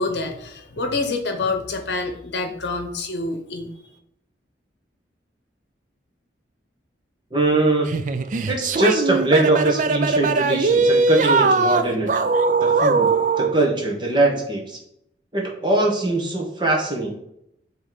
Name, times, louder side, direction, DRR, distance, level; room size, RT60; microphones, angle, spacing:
voice 1, 0.0-3.9, left 3 dB, 65° left, 6 dB, 0.9 m, -27 dB
voice 2, 7.3-7.9 8.5-12.1 12.6-13.1 13.4-14.8 15.3-17.1, right 2 dB, 25° right, -1 dB, 1.2 m, -21 dB
sound 1, 7.9-13.5, right 4 dB, 40° right, 0.3 m, -20 dB
7.7 x 3.2 x 4.0 m, 0.76 s
head